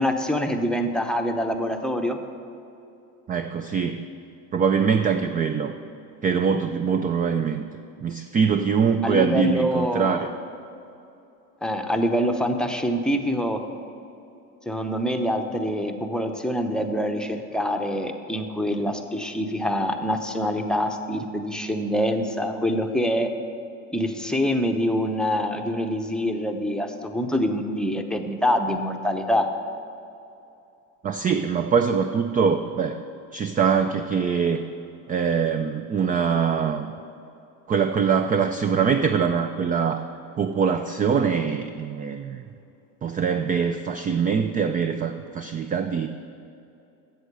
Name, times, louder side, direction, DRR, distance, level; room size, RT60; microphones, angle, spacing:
voice 1, 0.0-2.2 9.0-10.3 11.6-13.6 14.7-23.3 23.9-29.5, equal, ahead, 4 dB, 0.8 m, -25 dB
voice 2, 3.3-4.1 4.5-5.7 6.2-7.6 8.0-10.3 31.0-33.0 33.3-34.6 35.1-36.9 37.7-40.0 40.4-42.4 43.0-46.1, right 6 dB, 20° right, 8 dB, 0.3 m, -23 dB
8.0 x 7.8 x 6.7 m, 2.7 s
supercardioid pair, 90°, 40 cm